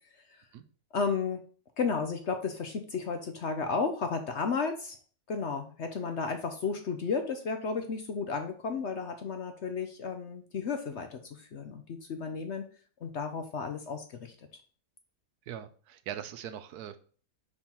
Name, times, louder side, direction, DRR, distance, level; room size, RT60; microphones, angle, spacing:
voice 1, 0.9-1.4 1.8-5.0 5.3-12.6 13.0-14.3, left 5 dB, 60° left, 6 dB, 0.8 m, -33 dB
voice 2, 15.5-17.0, right 10 dB, 75° right, 11 dB, 1.2 m, -41 dB
5.5 x 4.5 x 4.4 m, 0.42 s
omnidirectional pair, 1.7 m